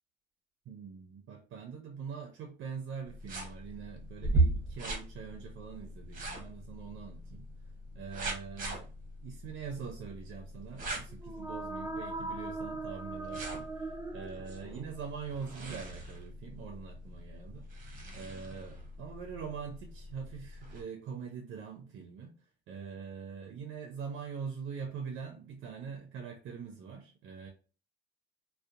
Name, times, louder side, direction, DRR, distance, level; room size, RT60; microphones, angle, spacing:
voice 1, 0.7-7.5 7.9-8.9 9.2-17.6 18.1-22.3 22.7-27.5, right 6 dB, 75° right, 0.5 m, -43 dB
sound 1, 3.1-20.8, right 2 dB, 45° right, 0.8 m, -39 dB
sound 2, 11.1-14.9, right 2 dB, 15° right, 0.3 m, -40 dB
2.7 x 2.1 x 2.4 m
cardioid pair, 90°, 20 cm